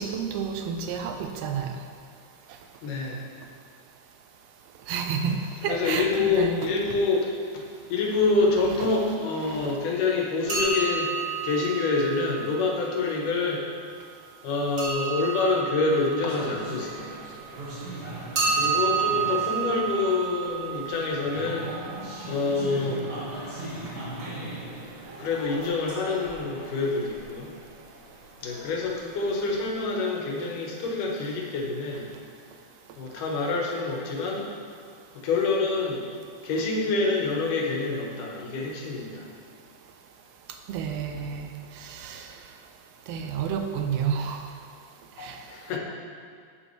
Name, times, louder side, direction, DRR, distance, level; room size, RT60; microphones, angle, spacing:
voice 1, 0.0-1.7 4.9-6.7 9.5-9.7 40.7-41.5 41.8-42.3 43.1-44.5 45.2-45.4, right 6 dB, 80° right, 5 dB, 1.5 m, -30 dB
voice 2, 2.8-3.2 5.7-11.1 11.4-13.6 14.4-17.6 18.6-21.7 22.3-23.0 25.2-27.5 28.4-32.1 33.0-34.5 35.1-36.0 36.4-39.3 45.2-45.8, left 3 dB, 85° left, -2 dB, 3.0 m, -27 dB
sound 1, 10.5-13.2 14.8-17.5 18.4-22.2 25.6-26.0 26.3-26.4 27.1-27.2 27.4-27.5, right 5 dB, 30° right, 2.6 m, -30 dB
sound 2, 16.3-29.8, right 1 dB, 50° right, 2.7 m, -40 dB
11.5 x 9.8 x 3.3 m, 2.2 s
omnidirectional pair, 3.6 m